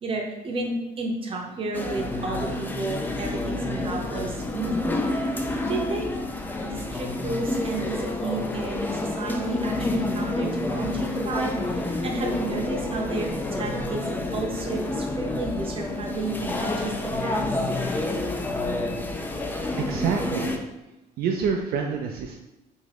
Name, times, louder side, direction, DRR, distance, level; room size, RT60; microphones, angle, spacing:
voice 1, 0.0-5.0 5.7-6.1 6.6-17.5, right 2 dB, 35° right, 0 dB, 0.7 m, -32 dB
sound 1, 1.7-20.6, left 2 dB, 10° left, 0.3 m, -29 dB
voice 2, 19.8-20.6 21.2-22.3, right 6 dB, 65° right, 1 dB, 0.4 m, -27 dB
3.5 x 2.1 x 3.4 m, 0.94 s
cardioid pair, 110°, 17 cm